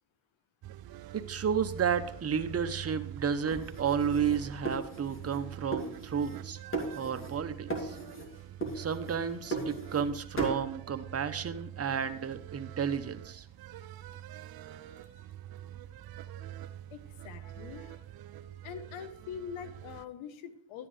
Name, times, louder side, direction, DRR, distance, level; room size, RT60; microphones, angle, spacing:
sound 1, 0.6-20.0, right 12 dB, 50° right, 0.6 m, -45 dB
voice 1, 1.1-6.6 6.9-8.0 8.7-13.5, right 7 dB, 30° right, 9 dB, 0.9 m, -32 dB
sound 2, 3.5-5.4 5.7-6.4 6.7-7.4 7.7-8.3 8.6-10.1 10.4-10.6, right 3 dB, 25° left, 2.7 m, -37 dB
voice 2, 16.9-18.0 18.6-20.9, left 7 dB, 80° left, 11 dB, 1.2 m, -43 dB
12.5 x 9.8 x 3.3 m, 0.68 s
cardioid pair, 100°, 47 cm